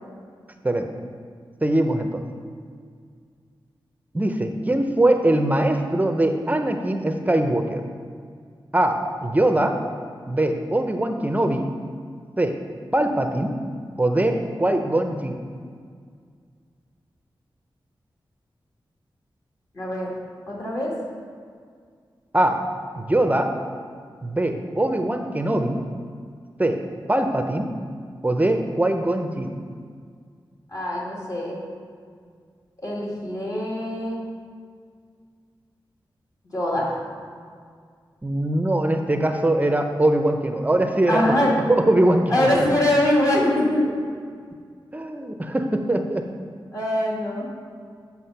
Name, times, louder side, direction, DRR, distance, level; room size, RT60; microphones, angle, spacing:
voice 1, 1.6-2.2 4.1-7.8 8.7-9.7 10.3-11.7 12.4-12.5 12.9-13.5 14.0-15.4 22.3-22.6 23.0-23.5 24.2-25.8 26.6-26.8 27.1-27.7 28.2-29.6 38.2-41.3 41.7-42.8 44.9-46.2, right 1 dB, 20° right, 5 dB, 0.6 m, -22 dB
voice 2, 19.8-20.1 20.5-20.9 30.7-31.6 32.8-34.2 36.5-36.9 41.1-41.5 42.3-43.8 46.7-47.5, left 1 dB, 45° left, -4 dB, 2.2 m, -23 dB
7.5 x 5.9 x 5.6 m, 2.1 s
wide cardioid pair, 100°, 9 cm